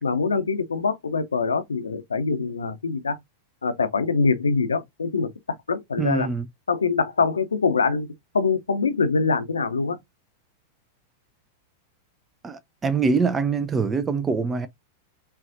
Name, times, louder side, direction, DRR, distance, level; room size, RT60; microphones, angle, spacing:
voice 1, 0.0-3.2 3.6-5.3 5.7-6.3 6.7-8.1 8.3-10.0, left 4 dB, 75° left, 0.7 m, -24 dB
voice 2, 6.0-6.5 12.4-14.7, right 5 dB, 20° right, 0.5 m, -24 dB
5.7 x 2.4 x 2.6 m
figure-of-eight pair, 95°, 0 cm